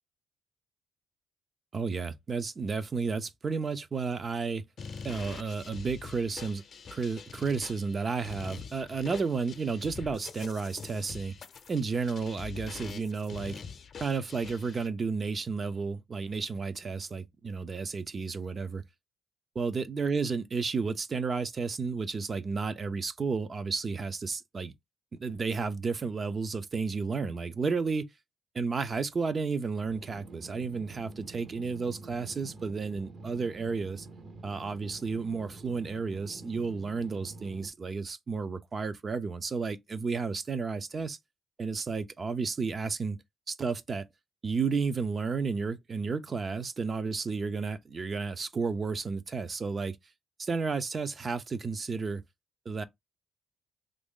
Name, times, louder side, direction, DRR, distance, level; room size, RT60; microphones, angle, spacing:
voice 1, 1.7-4.6 5.0-6.6 6.9-11.3 11.7-13.6 14.0-18.8 19.6-24.7 25.2-28.1 28.5-34.1 34.4-41.2 41.6-43.2 43.5-44.0 44.4-50.0 50.4-52.2 52.7-52.8, right 4 dB, 40° right, 0.5 m, -32 dB
sound 1, 4.8-14.9, left 6 dB, 55° left, 0.6 m, -44 dB
sound 2, 29.8-37.7, right 3 dB, 55° right, 0.8 m, -47 dB
3.0 x 2.5 x 3.6 m
cardioid pair, 90°, 0 cm